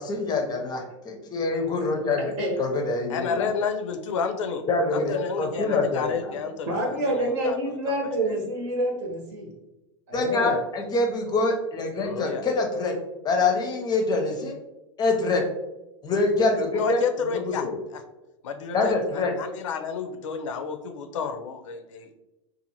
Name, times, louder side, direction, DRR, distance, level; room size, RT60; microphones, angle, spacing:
voice 1, 0.0-3.5 4.7-6.4 10.1-13.0 13.2-14.5 15.0-15.4 16.0-17.7 18.7-19.3, left 3 dB, 25° left, 3 dB, 0.6 m, -25 dB
voice 2, 2.2-2.5 6.7-9.5 10.1-10.6, right 1 dB, 65° right, -1 dB, 1.1 m, -27 dB
voice 3, 3.1-4.6 4.9-8.4 12.0-12.4 16.7-17.6 17.9-18.0 18.4-22.2, left 6 dB, 80° left, 7 dB, 0.4 m, -31 dB
2.6 x 2.4 x 2.8 m, 0.98 s
hypercardioid pair, 105°, 16 cm